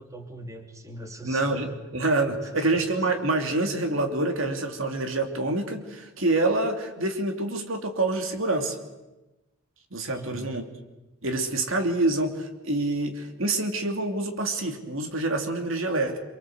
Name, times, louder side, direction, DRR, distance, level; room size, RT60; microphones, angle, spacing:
voice 1, 0.0-1.8 2.4-2.9 10.1-10.6, right 1 dB, 15° right, 4 dB, 2.8 m, -41 dB
voice 2, 1.2-8.8 9.9-10.6 11.2-16.2, right 2 dB, 65° right, 5 dB, 2.9 m, -26 dB
26.5 x 24.5 x 8.0 m, 1.1 s
head